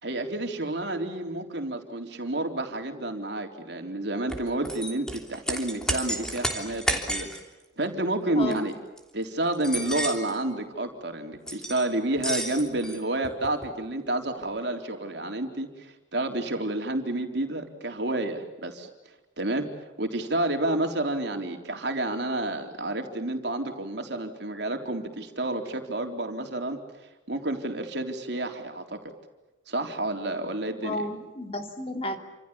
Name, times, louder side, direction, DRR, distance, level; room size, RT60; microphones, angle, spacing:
voice 1, 0.0-7.3 7.8-8.7 9.1-18.9 19.4-19.7 20.0-26.8 27.3-29.1 29.7-31.0, right 1 dB, 60° right, 4 dB, 3.9 m, -30 dB
sound 1, 4.3-7.4 8.4-8.6 9.0-9.1 9.5-10.4 11.5-11.9 12.2-13.7, equal, 5° left, 3.2 m, -32 dB
voice 2, 30.8-32.2, left 1 dB, 30° left, 5 dB, 3.0 m, -32 dB
29.5 x 27.5 x 7.2 m, 1.1 s
head